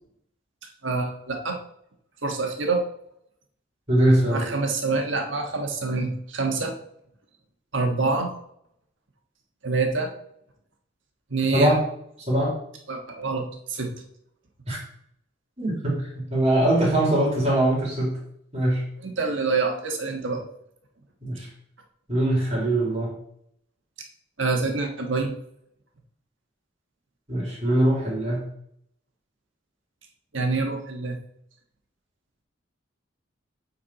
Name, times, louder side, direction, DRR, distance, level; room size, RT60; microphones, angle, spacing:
voice 1, 0.8-1.6 2.2-2.9 4.3-6.7 7.7-8.3 9.6-10.1 11.3-11.8 12.9-13.9 19.0-20.4 24.4-25.3 30.3-31.2, right 3 dB, 70° right, 3 dB, 1.4 m, -26 dB
voice 2, 3.9-4.5 11.5-11.8 12.3-12.5 14.7-14.8 15.6-18.1 18.5-18.8 21.2-21.5 22.1-23.1 27.3-28.4, right 1 dB, 35° right, -3 dB, 3.0 m, -22 dB
8.6 x 4.3 x 4.2 m, 0.72 s
head